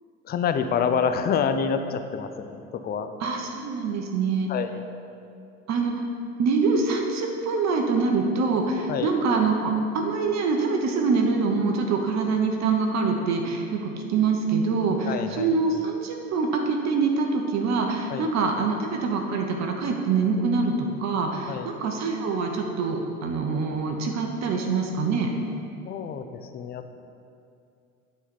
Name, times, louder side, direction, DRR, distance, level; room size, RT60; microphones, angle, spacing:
voice 1, 0.2-3.1 4.5-4.8 8.9-9.1 15.0-15.5 18.1-18.3 21.5-21.7 25.8-27.0, left 6 dB, 25° left, 8 dB, 0.5 m, -27 dB
voice 2, 3.2-4.5 5.7-6.0 6.4-25.3, right 4 dB, 40° right, 2 dB, 1.0 m, -25 dB
9.7 x 4.2 x 5.3 m, 2.5 s
hypercardioid pair, 75°, 42 cm